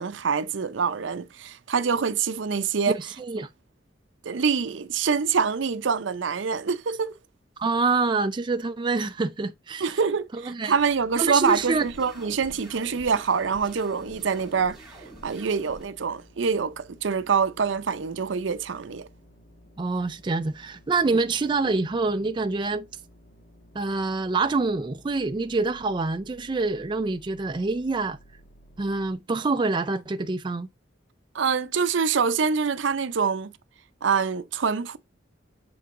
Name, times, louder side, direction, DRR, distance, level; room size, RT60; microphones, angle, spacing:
voice 1, 0.0-3.0 4.2-7.1 9.8-15.0 15.2-19.1 31.3-33.5 34.0-35.0, right 5 dB, 75° right, 0.6 m, -25 dB
voice 2, 2.9-3.5 7.6-10.0 10.3-10.7 11.2-11.9 19.8-22.9 23.7-28.2 28.8-30.7, right 3 dB, 25° right, 0.4 m, -26 dB
sound 1, 10.8-29.1, equal, 50° left, 1.5 m, -54 dB
sound 2, 11.4-15.8, right 1 dB, 5° right, 2.2 m, -46 dB
7.9 x 3.8 x 3.6 m
head